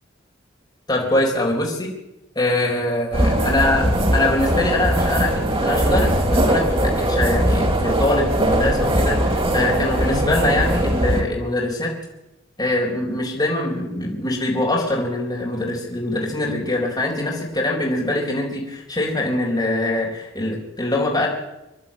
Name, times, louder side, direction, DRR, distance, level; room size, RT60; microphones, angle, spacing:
voice 1, 0.9-1.9 2.3-11.9 12.6-21.3, left 2 dB, 20° left, -2 dB, 4.4 m, -23 dB
sound 1, 3.1-11.2, right 1 dB, 30° right, 2.8 m, -20 dB
25.5 x 11.5 x 8.8 m, 0.93 s
head